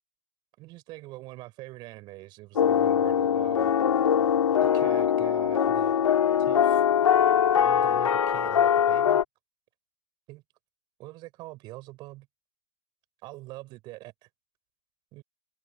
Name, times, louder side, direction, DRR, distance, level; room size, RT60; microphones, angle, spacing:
voice 1, 0.6-3.7 4.6-6.0 6.4-6.8 7.5-9.2 10.3-10.4 11.0-12.3 13.2-14.1 15.1-15.2, right 19 dB, 25° right, 6.7 m, -43 dB
sound 1, 2.6-9.2, left 8 dB, 80° left, 3.3 m, -22 dB
open air
hypercardioid pair, 155°, 16 cm